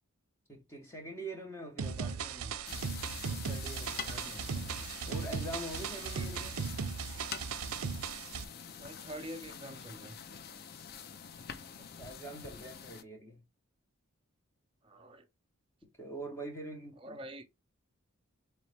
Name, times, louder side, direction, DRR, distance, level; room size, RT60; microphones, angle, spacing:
voice 1, 0.5-2.2 3.2-4.1 5.1-6.6 11.8-13.4 16.0-17.2, right 1 dB, 10° left, 0.9 m, -44 dB
sound 1, 1.8-8.4, right 6 dB, 85° right, 0.5 m, -37 dB
voice 2, 2.0-2.7 4.1-4.8 6.0-6.3 8.8-10.2 14.8-15.3 17.0-17.5, right 1 dB, 25° right, 0.6 m, -47 dB
sound 2, 2.6-13.0, left 7 dB, 45° left, 0.4 m, -46 dB
3.9 x 3.1 x 3.3 m
head